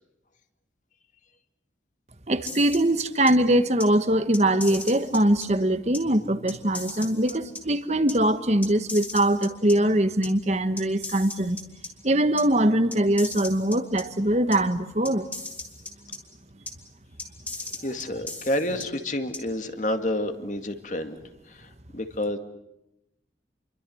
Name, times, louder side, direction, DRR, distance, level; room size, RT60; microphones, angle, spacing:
voice 1, 2.3-11.6 12.0-15.3, right 1 dB, 40° right, 11 dB, 1.4 m, -22 dB
sound 1, 2.5-3.3 3.8-3.9 4.3-5.5 5.9-6.0 6.5-7.6 8.1-8.2 8.6-9.7 10.2-10.3 10.8-11.9 12.4-12.5 12.9-14.0 14.5-14.6 15.0-16.2 16.7-16.8 17.2-18.9 19.3-19.4, left 3 dB, 10° left, 3.7 m, -36 dB
voice 2, 17.8-21.2 21.5-22.4, left 1 dB, 45° left, 7 dB, 2.2 m, -29 dB
29.5 x 23.5 x 7.9 m, 0.87 s
head